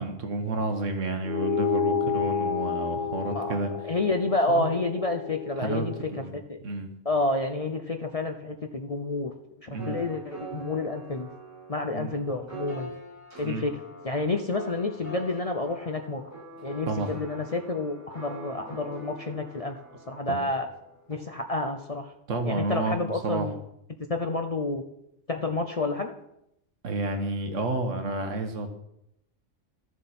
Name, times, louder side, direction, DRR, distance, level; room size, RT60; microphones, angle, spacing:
voice 1, 0.0-3.7 4.5-4.7 5.6-6.3 6.6-6.9 9.7-10.0 11.9-12.1 13.4-13.7 16.9-17.1 20.3-20.4 22.3-23.5 26.8-28.7, right 2 dB, 80° right, 6 dB, 1.5 m, -30 dB
sound 1, 1.2-6.0, left 6 dB, 80° left, 1.7 m, -30 dB
voice 2, 3.2-3.6 3.8-5.9 6.3-6.6 7.0-11.3 11.7-12.9 13.4-13.7 14.0-16.2 16.6-19.8 20.1-20.7 21.1-22.1 22.4-23.5 24.1-24.8 25.3-26.1, left 2 dB, 40° left, 5 dB, 0.5 m, -29 dB
sound 2, 9.8-21.1, right 1 dB, 10° right, 5.2 m, -43 dB
13.0 x 7.3 x 4.2 m, 0.81 s
omnidirectional pair, 1.3 m